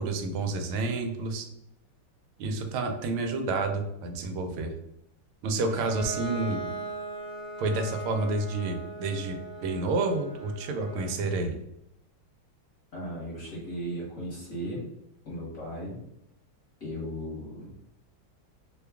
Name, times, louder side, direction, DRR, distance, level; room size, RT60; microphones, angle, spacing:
voice 1, 0.0-1.5 2.4-4.7 5.4-6.7 7.6-11.6, right 3 dB, 85° right, 5 dB, 1.5 m, -29 dB
Bowed string instrument, 5.7-11.3, right 2 dB, 60° right, 0.8 m, -39 dB
voice 2, 12.9-14.9 15.2-16.0 16.8-17.7, equal, 50° left, -6 dB, 1.2 m, -36 dB
3.4 x 2.3 x 3.4 m, 0.81 s
omnidirectional pair, 2.3 m